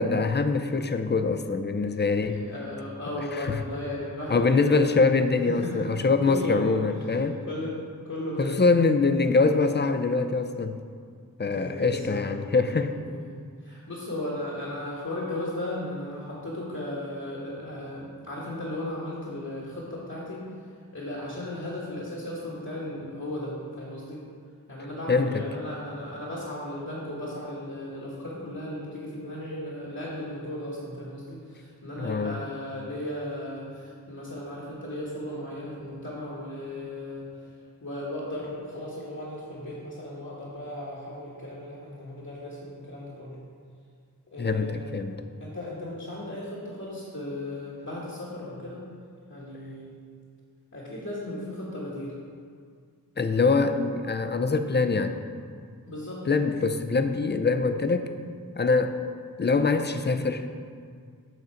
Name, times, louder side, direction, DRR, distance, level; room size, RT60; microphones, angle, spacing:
voice 1, 0.0-2.4 3.3-3.6 4.3-7.4 8.4-10.8 11.4-12.9 25.1-25.4 32.0-32.4 44.4-45.2 53.2-55.2 56.3-58.1 58.6-58.9 59.4-60.5, left 4 dB, 30° left, 9 dB, 0.5 m, -24 dB
voice 2, 2.3-4.9 5.4-5.9 6.2-7.7 8.0-8.5 11.4-12.3 12.8-20.4 20.9-24.2 24.7-37.5 37.8-43.4 44.3-45.0 45.4-48.8 49.3-49.9 50.7-52.2 55.9-56.3, left 1 dB, 55° left, -8 dB, 1.5 m, -36 dB
7.9 x 3.8 x 5.7 m, 2.1 s
wide cardioid pair, 40°, 35 cm